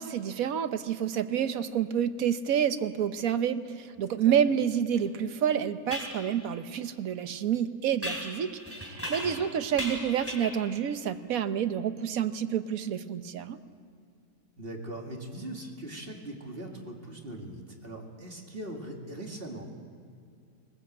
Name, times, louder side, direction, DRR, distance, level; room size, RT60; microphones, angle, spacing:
voice 1, 0.0-13.6, right 8 dB, 60° right, 10 dB, 1.3 m, -29 dB
sound 1, 4.9-5.0 5.9-6.2 8.0-9.5 9.8-10.7, equal, 10° left, 3.9 m, -37 dB
voice 2, 9.2-9.5 14.6-19.7, right 1 dB, 35° right, 1 dB, 2.7 m, -40 dB
20.5 x 20.0 x 7.9 m, 2.4 s
omnidirectional pair, 1.8 m